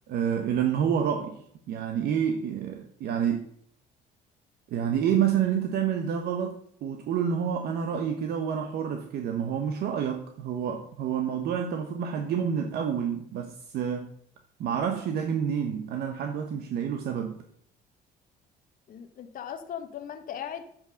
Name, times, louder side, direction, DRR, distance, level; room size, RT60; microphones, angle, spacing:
voice 1, 0.1-1.4 1.7-3.5 4.7-14.1 14.6-17.4, right 8 dB, 70° right, 5 dB, 1.1 m, -28 dB
voice 2, 18.9-20.6, left 9 dB, 55° left, 6 dB, 1.1 m, -38 dB
7.5 x 6.0 x 7.6 m, 0.65 s
cardioid pair, 110°, 17 cm